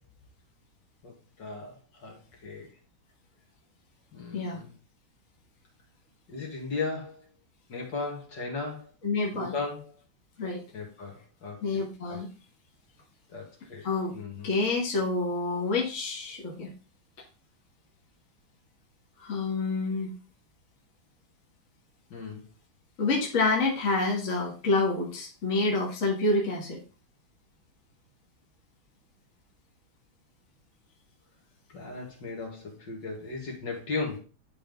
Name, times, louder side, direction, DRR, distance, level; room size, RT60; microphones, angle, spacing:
voice 1, 1.0-2.7 4.1-4.7 6.3-7.2 7.7-8.9 9.3-9.9 10.7-11.8 12.1-12.2 13.3-13.9 14.1-14.5 22.1-22.4 31.7-34.2, left 3 dB, 60° left, -1 dB, 2.7 m, -36 dB
voice 2, 9.0-9.5 10.4-10.6 11.6-12.3 13.8-14.2 14.4-16.7 19.2-20.1 23.0-26.8, left 3 dB, 40° left, -1 dB, 1.8 m, -28 dB
11.0 x 3.8 x 3.5 m, 0.33 s
omnidirectional pair, 2.2 m